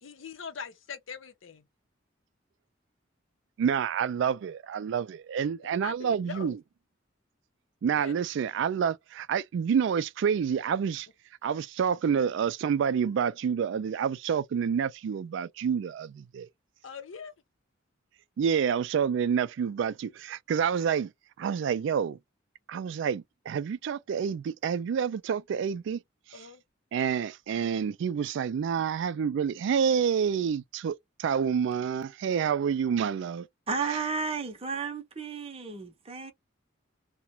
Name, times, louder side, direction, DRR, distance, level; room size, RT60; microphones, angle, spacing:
voice 1, 0.0-1.7 5.6-6.5 7.9-8.2 16.8-17.3 26.3-26.6, left 6 dB, 80° left, 0.6 m, -42 dB
voice 2, 3.6-6.6 7.8-11.1 11.4-16.5 18.4-21.1 21.4-22.2 22.7-26.0 26.9-33.5, right 7 dB, 65° right, 0.3 m, -28 dB
voice 3, 33.7-36.3, right 5 dB, 30° right, 0.7 m, -33 dB
2.4 x 2.1 x 2.9 m
head